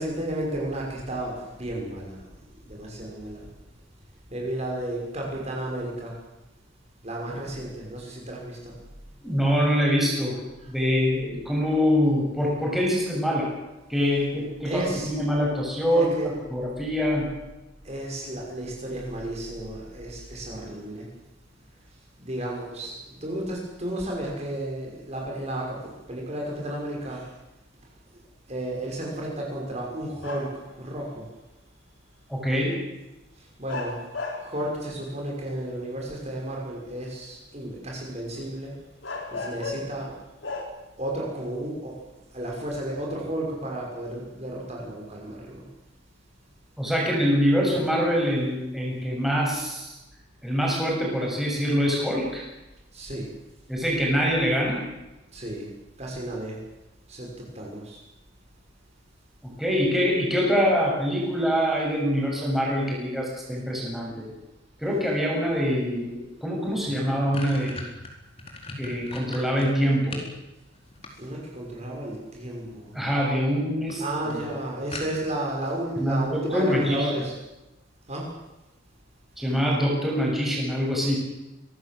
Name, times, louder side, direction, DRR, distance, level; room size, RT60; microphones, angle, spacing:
voice 1, 0.0-2.2 2.5-3.5 4.3-6.2 7.0-8.7 10.6-10.7 14.6-15.1 15.9-16.3 17.8-21.1 22.2-27.3 28.5-31.2 33.6-34.0 34.4-38.8 39.3-40.2 41.0-42.0 42.3-45.6 52.9-53.3 55.3-55.7 56.0-56.6 57.1-58.0 71.2-73.0 74.0-77.3 78.1-78.3, right 1 dB, 35° right, -2 dB, 6.0 m, -33 dB
voice 2, 9.2-10.4 10.7-13.5 13.9-17.3 32.3-32.8 46.8-50.0 50.4-52.4 53.7-54.9 59.4-64.3 64.8-67.9 68.8-70.2 72.9-74.4 76.0-77.1 79.4-81.2, equal, ahead, -3 dB, 7.4 m, -24 dB
sound 1, 30.2-30.7 32.5-32.6 33.7-34.6 35.2-35.8 38.4-38.5 39.0-40.0 40.4-40.6, left 3 dB, 75° left, 4.3 m, -34 dB
sound 2, 66.5-66.6 66.9-70.3 70.7-71.6 72.7-73.1 73.5-73.6 73.9-74.0 74.3-74.4 74.9-75.5, left 2 dB, 30° left, 4.5 m, -38 dB
24.0 x 18.5 x 7.8 m, 1.0 s
head